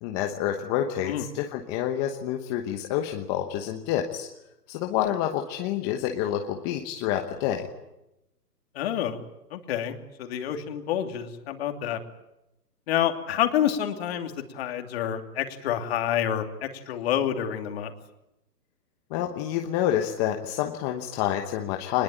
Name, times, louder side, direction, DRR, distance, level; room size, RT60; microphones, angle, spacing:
voice 1, 0.0-4.3 4.7-7.7 19.1-22.0, left 11 dB, 15° left, 3 dB, 1.1 m, -28 dB
voice 2, 8.7-9.2 9.5-12.0 12.9-17.9, left 10 dB, 35° left, 5 dB, 2.8 m, -28 dB
24.0 x 21.0 x 9.1 m, 0.91 s
hypercardioid pair, 150°, 50 cm